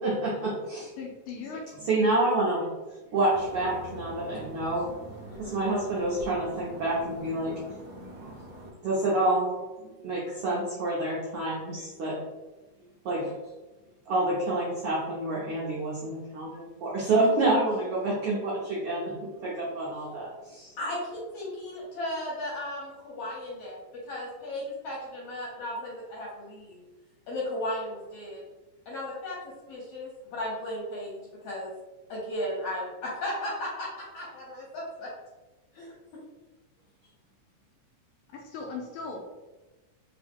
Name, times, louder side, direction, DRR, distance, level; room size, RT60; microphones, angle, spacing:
voice 1, 0.0-0.9 1.9-2.7 3.1-4.8 5.4-7.5 8.2-8.3 8.8-9.5 10.0-12.2 13.0-13.3 14.1-20.6, right 2 dB, 80° right, -6 dB, 1.2 m, -28 dB
voice 2, 1.0-1.6 38.3-39.4, left 4 dB, 80° left, 1 dB, 1.9 m, -38 dB
sound 1, 3.3-8.7, equal, 65° right, 0.9 m, -44 dB
voice 3, 5.3-5.7 20.6-26.8 27.3-28.4 28.8-29.4 29.7-31.7 32.1-35.1 35.7-35.9, left 1 dB, 65° left, -4 dB, 1.6 m, -35 dB
5.0 x 2.8 x 3.6 m, 1.2 s
omnidirectional pair, 3.9 m